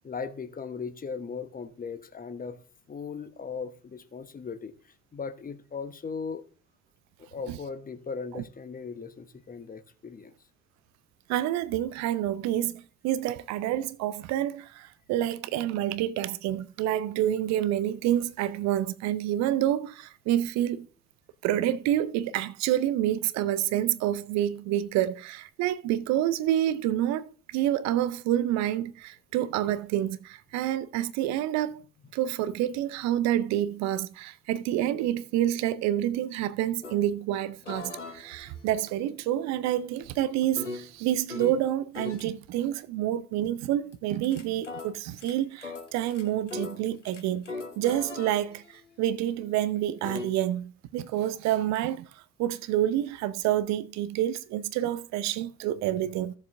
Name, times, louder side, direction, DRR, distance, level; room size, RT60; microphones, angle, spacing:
voice 1, 0.0-2.6 2.9-4.7 5.1-6.4 7.3-10.3, left 5 dB, 25° left, 1.1 m, -38 dB
voice 2, 11.3-20.9 21.4-31.8 32.1-47.4 47.8-56.3, right 12 dB, 50° right, 0.6 m, -28 dB
sound 1, 36.8-37.0 37.6-41.6 41.9-42.3 43.9-50.3, left 3 dB, 90° left, 0.9 m, -41 dB
16.0 x 7.1 x 2.6 m
figure-of-eight pair, 55°, 35 cm